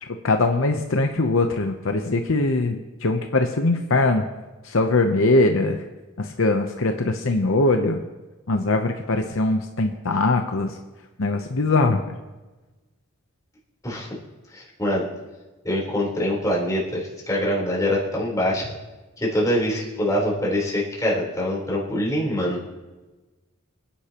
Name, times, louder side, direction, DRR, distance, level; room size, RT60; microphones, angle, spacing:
voice 1, 0.0-4.2 4.6-5.8 6.2-8.0 8.5-10.8 11.2-12.2, left 2 dB, 60° left, 5 dB, 0.8 m, -21 dB
voice 2, 14.5-15.1 15.6-18.7 19.2-22.6, equal, 15° left, -5 dB, 3.9 m, -24 dB
25.0 x 10.0 x 3.0 m, 1.2 s
head